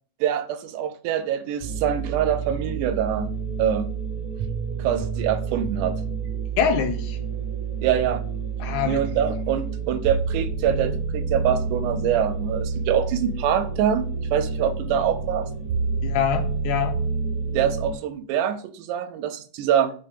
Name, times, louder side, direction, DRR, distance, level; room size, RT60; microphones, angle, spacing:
voice 1, 0.2-3.3 3.6-3.9 4.8-6.0 7.8-8.2 8.9-15.5 17.5-19.9, right 9 dB, 90° right, 2.2 m, -24 dB
sound 1, 1.6-17.9, right 5 dB, 70° right, 1.8 m, -29 dB
voice 2, 6.6-7.2 8.6-9.0 16.0-17.0, left 8 dB, 80° left, 2.0 m, -24 dB
7.0 x 2.7 x 5.0 m
omnidirectional pair, 3.6 m